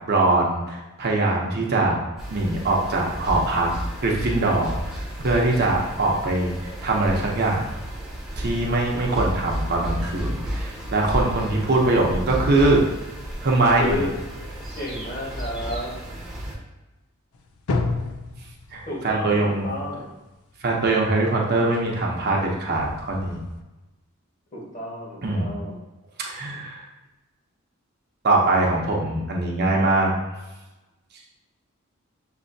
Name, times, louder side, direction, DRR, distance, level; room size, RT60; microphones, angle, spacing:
voice 1, 0.1-2.0 2.3-3.7 4.0-7.7 8.4-12.8 13.4-14.0 18.7-19.6 20.6-23.4 25.2-25.5 26.3-26.9 28.2-30.1, right 2 dB, 50° right, -1 dB, 0.7 m, -22 dB
sound 1, 2.2-16.5, equal, ahead, 0.8 m, -32 dB
voice 2, 13.8-14.1 14.7-16.0 18.8-20.1 24.5-25.8, left 1 dB, 35° left, -5 dB, 1.5 m, -31 dB
sound 2, 17.3-20.6 21.7-23.6, left 3 dB, 85° left, 0.4 m, -32 dB
6.5 x 2.7 x 2.6 m, 1.1 s
head